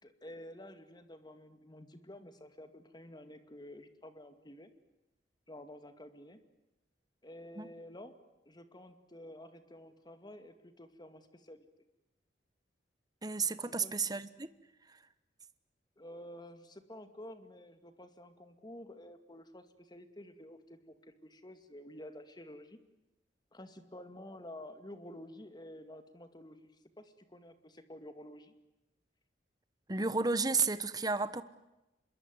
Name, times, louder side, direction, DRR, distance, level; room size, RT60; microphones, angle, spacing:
voice 1, 0.0-4.7 5.5-6.4 7.2-8.2 8.5-11.7 13.8-13.9 16.0-22.8 23.5-28.5, left 1 dB, 25° left, 10 dB, 2.3 m, -51 dB
voice 2, 13.2-14.5 29.9-31.4, right 4 dB, 20° right, 14 dB, 1.1 m, -32 dB
26.0 x 22.5 x 9.5 m, 0.94 s
head